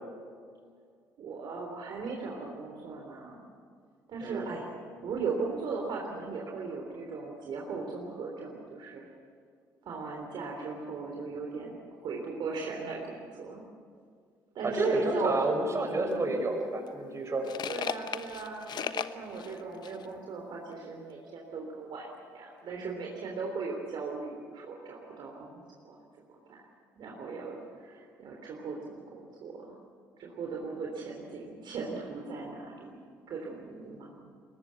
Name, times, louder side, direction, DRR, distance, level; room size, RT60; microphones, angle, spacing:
voice 1, 1.2-3.4 4.1-4.7 5.0-9.0 9.8-13.6 14.5-16.3 17.7-26.0 26.5-26.6 27.0-29.7 30.2-33.0 33.3-34.3, right 4 dB, 60° right, -1 dB, 3.5 m, -37 dB
voice 2, 4.2-4.5 14.6-17.4, right 2 dB, 35° right, 3 dB, 5.8 m, -30 dB
sound 1, 16.1-16.2 16.9-20.1, left 8 dB, 55° left, 1.0 m, -37 dB
22.5 x 19.5 x 8.3 m, 2.1 s
hypercardioid pair, 50°, 9 cm